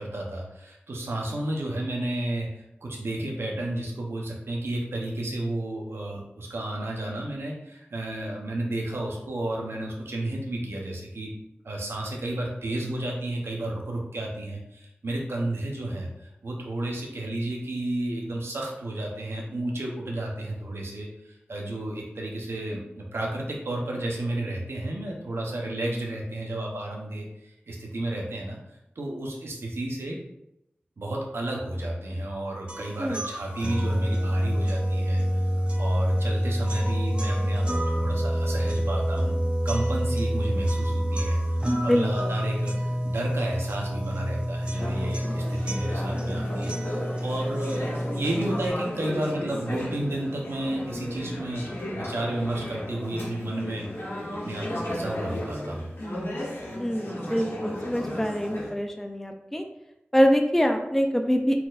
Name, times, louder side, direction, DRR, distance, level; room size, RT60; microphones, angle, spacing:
voice 1, 0.0-11.3 11.6-28.6 29.0-30.2 31.0-35.5 35.8-51.6 51.9-53.9 54.4-55.9, right 1 dB, 90° right, -1 dB, 0.9 m, -32 dB
sound 1, 32.7-48.7, equal, 30° right, 0.9 m, -27 dB
voice 2, 41.9-42.3 56.8-59.6 60.1-61.7, equal, 5° left, 4 dB, 0.4 m, -24 dB
Conversation / Chatter, 44.7-58.7, left 1 dB, 85° left, 1.3 m, -34 dB
4.2 x 4.2 x 2.5 m, 0.84 s
wide cardioid pair, 50°, 4 cm